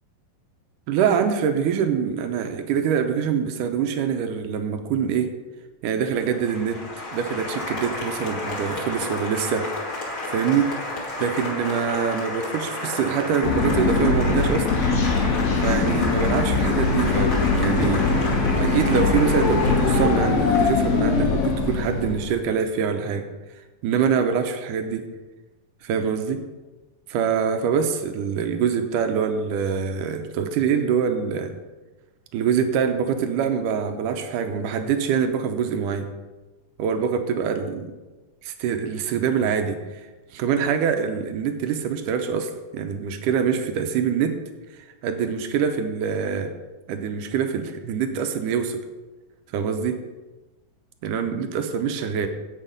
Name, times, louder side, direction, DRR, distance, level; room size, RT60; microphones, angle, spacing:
voice 1, 0.9-5.3 5.8-6.8 7.1-9.7 10.3-10.7 11.2-14.9 15.6-18.1 18.6-23.2 23.8-25.1 25.8-26.4 27.1-31.5 32.3-36.1 36.8-37.9 38.4-40.0 40.3-44.4 45.0-46.5 46.9-48.8 49.5-50.0 51.0-52.3, right 7 dB, 75° right, 7 dB, 2.1 m, -24 dB
Applause, 6.2-21.0, left 2 dB, 35° left, 2.6 m, -32 dB
sound 1, 13.4-22.4, left 4 dB, 75° left, 3.4 m, -21 dB
9.8 x 8.3 x 5.3 m, 1.2 s
omnidirectional pair, 4.3 m